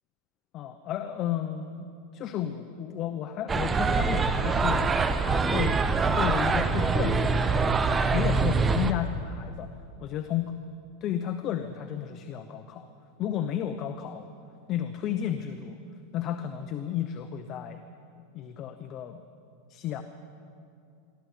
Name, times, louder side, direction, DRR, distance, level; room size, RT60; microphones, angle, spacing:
voice 1, 0.5-1.9 2.1-5.8 6.1-7.8 8.1-9.7 10.0-10.5 11.0-12.9 13.2-14.3 14.7-15.8 16.1-17.8 18.3-19.2 19.7-20.0, left 10 dB, 35° left, 8 dB, 0.9 m, -32 dB
sound 1, 3.5-8.9, right 4 dB, 15° right, 0.9 m, -24 dB
23.0 x 14.0 x 8.3 m, 2.5 s
supercardioid pair, 150°, 0 cm